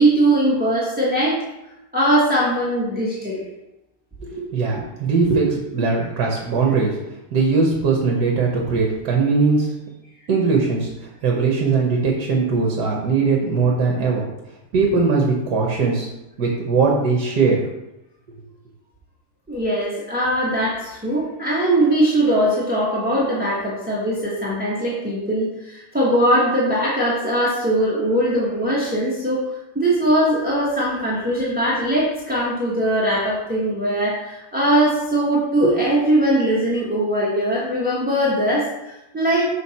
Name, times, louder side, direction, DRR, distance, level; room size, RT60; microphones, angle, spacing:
voice 1, 0.0-1.4 1.9-3.4 4.3-4.4 4.7-4.8 5.3-5.4 19.5-29.4 29.7-39.5, right 1 dB, 5° right, -6 dB, 0.9 m, -20 dB
voice 2, 4.2-5.4 5.7-6.9 7.3-9.7 10.3-14.2 14.7-16.1 16.4-17.6, right 4 dB, 55° right, -1 dB, 1.4 m, -20 dB
6.3 x 5.2 x 4.2 m, 0.93 s
omnidirectional pair, 2.4 m